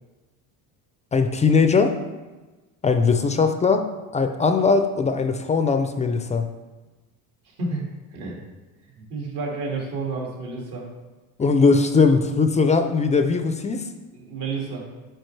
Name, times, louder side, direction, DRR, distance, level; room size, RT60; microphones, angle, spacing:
voice 1, 1.1-1.9 2.8-3.9 4.1-6.4 11.4-13.8, left 4 dB, 20° left, 7 dB, 0.3 m, -20 dB
voice 2, 7.4-7.8 8.1-8.4 8.9-10.9 14.1-14.8, right 3 dB, 65° right, -1 dB, 2.2 m, -30 dB
9.0 x 4.5 x 3.2 m, 1.2 s
cardioid pair, 110°, 42 cm